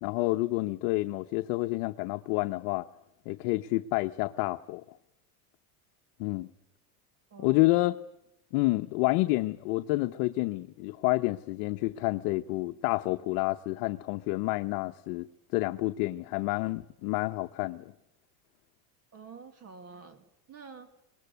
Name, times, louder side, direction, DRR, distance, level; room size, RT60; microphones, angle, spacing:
voice 1, 0.0-2.9 3.3-4.8 6.2-6.5 7.4-8.0 8.5-15.3 15.5-17.9, left 20 dB, 65° left, 1.0 m, -29 dB
voice 2, 19.1-21.0, right 5 dB, 35° right, 2.2 m, -48 dB
23.0 x 20.5 x 8.1 m
supercardioid pair, 125°, 45 cm